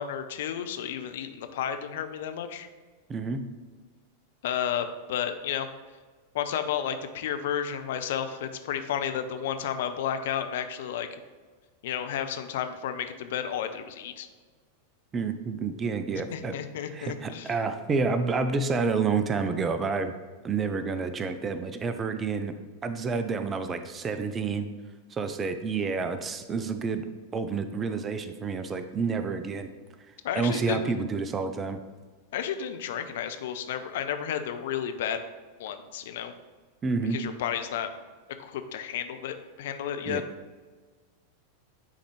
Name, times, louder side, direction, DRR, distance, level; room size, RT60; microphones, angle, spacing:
voice 1, 0.0-2.7 4.4-5.7 6.3-11.1 11.8-14.3 16.3-17.5 30.2-30.9 32.3-35.2 35.6-36.3 37.1-37.9 38.4-40.2, left 9 dB, 55° left, 8 dB, 0.5 m, -32 dB
voice 2, 3.1-3.4 15.1-16.5 16.9-20.1 20.4-22.5 22.8-24.7 25.1-27.1 27.3-29.7 30.4-31.8 36.8-37.2 40.1-40.2, right 4 dB, 20° right, 9 dB, 0.5 m, -29 dB
9.6 x 3.9 x 3.2 m, 1.4 s
figure-of-eight pair, 90°, 0 cm